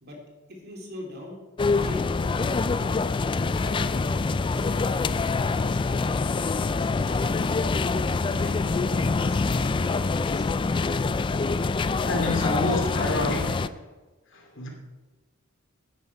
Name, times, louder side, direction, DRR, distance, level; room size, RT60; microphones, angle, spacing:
voice 1, 0.5-1.4 1.7-3.0 3.4-4.1 4.5-7.4 7.9-10.5, left 1 dB, 55° right, 0 dB, 2.9 m, -41 dB
sound 1, 1.6-13.7, left 4 dB, 25° left, 0.3 m, -25 dB
voice 2, 12.0-13.8 14.3-14.7, left 2 dB, 65° left, 1 dB, 2.7 m, -29 dB
11.0 x 9.5 x 5.6 m, 1.2 s
head